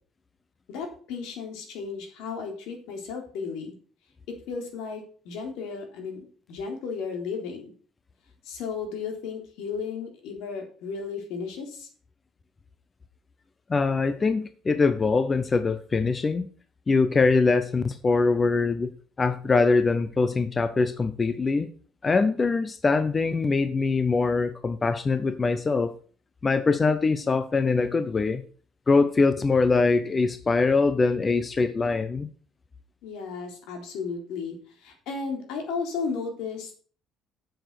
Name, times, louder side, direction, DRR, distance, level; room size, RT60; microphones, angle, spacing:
voice 1, 0.7-3.8 4.3-7.7 8.5-11.9 33.0-36.8, left 5 dB, 75° left, 3 dB, 3.5 m, -34 dB
voice 2, 13.7-16.5 16.9-18.9 19.2-21.7 22.0-25.9 26.4-28.4 28.9-32.3, left 4 dB, 15° left, 10 dB, 0.5 m, -23 dB
7.8 x 7.0 x 6.4 m, 0.42 s
cardioid pair, 180°, 0 cm